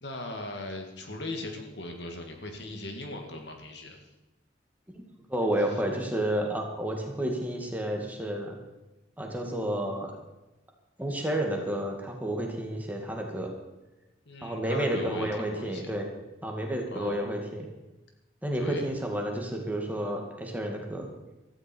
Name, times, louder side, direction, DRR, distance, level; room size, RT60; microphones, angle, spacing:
voice 1, 0.0-4.1 5.7-5.8 14.3-15.9 16.9-17.2 18.6-18.8, left 2 dB, 60° left, 3 dB, 2.2 m, -39 dB
voice 2, 5.3-8.6 9.2-10.1 11.0-13.5 14.4-16.0 16.4-17.7 18.4-21.1, right 1 dB, 10° right, 1 dB, 2.2 m, -30 dB
16.0 x 14.0 x 4.6 m, 1.0 s
head